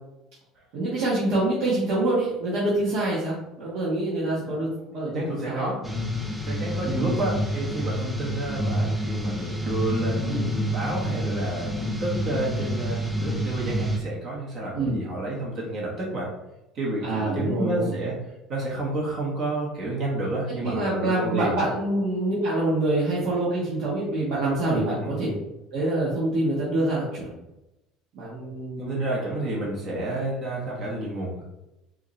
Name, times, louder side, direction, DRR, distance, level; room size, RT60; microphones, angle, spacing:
voice 1, 0.7-5.7 6.8-7.2 14.7-15.0 17.0-17.9 20.6-25.3 25.7-27.3 28.1-28.9, right 2 dB, 70° right, -7 dB, 1.3 m, -26 dB
voice 2, 5.1-5.8 6.4-16.3 16.7-18.2 18.5-21.6 24.8-25.1 28.8-31.4, right 1 dB, 50° right, -4 dB, 1.3 m, -30 dB
sound 1, 5.8-14.0, equal, 5° right, 0.6 m, -28 dB
4.7 x 2.9 x 3.2 m, 0.94 s
supercardioid pair, 115°, 0 cm